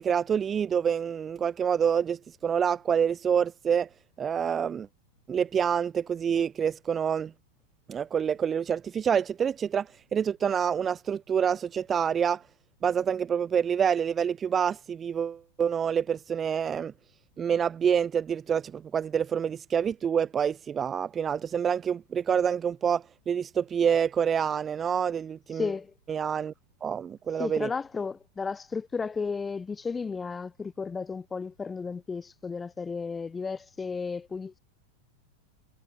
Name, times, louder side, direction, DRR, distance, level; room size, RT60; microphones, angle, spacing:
voice 1, 0.0-3.9 4.2-4.9 5.3-7.3 7.9-12.4 12.8-16.9 17.4-25.7 26.1-26.5 26.8-27.7, right 7 dB, 20° right, 0.5 m, -27 dB
voice 2, 25.6-25.9 27.4-34.6, left 5 dB, 15° left, 2.8 m, -33 dB
figure-of-eight pair, 90°, 0 cm